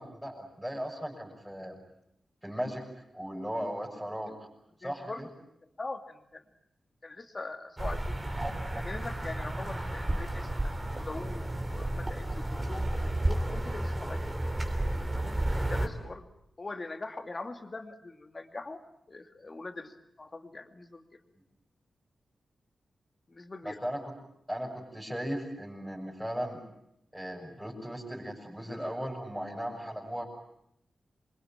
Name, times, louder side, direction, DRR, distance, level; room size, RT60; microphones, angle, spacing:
voice 1, 0.0-1.8 2.4-2.9 3.1-4.5 4.8-5.3 23.6-24.1 24.5-26.6 27.1-30.3, equal, ahead, -3 dB, 6.6 m, -37 dB
voice 2, 4.8-5.3 5.8-6.4 7.0-8.2 8.8-14.3 15.1-16.3 16.6-18.8 19.1-21.2 23.3-23.8, left 3 dB, 30° left, 7 dB, 2.5 m, -42 dB
sound 1, 7.8-15.9, right 1 dB, 20° right, 3.8 m, -32 dB
27.5 x 23.5 x 9.0 m, 0.78 s
wide cardioid pair, 125°, 0 cm